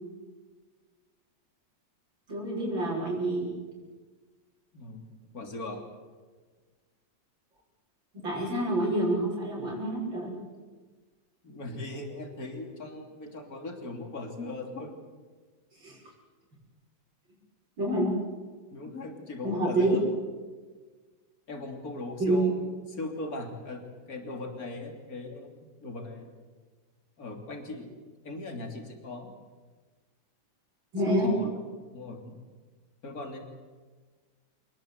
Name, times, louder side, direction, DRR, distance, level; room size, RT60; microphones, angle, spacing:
voice 1, 2.3-3.5 8.1-10.3 15.8-16.0 17.8-18.1 19.4-20.0 22.2-22.4 30.9-31.3, right 1 dB, 80° right, -4 dB, 6.8 m, -27 dB
voice 2, 4.7-5.1 5.3-5.8 11.4-14.9 18.7-20.0 21.5-22.6 22.9-26.3 27.2-27.9 28.2-29.3 31.0-31.6 31.9-32.4 33.0-33.4, left 2 dB, 45° left, 4 dB, 3.6 m, -39 dB
26.5 x 20.5 x 8.2 m, 1.4 s
omnidirectional pair, 2.1 m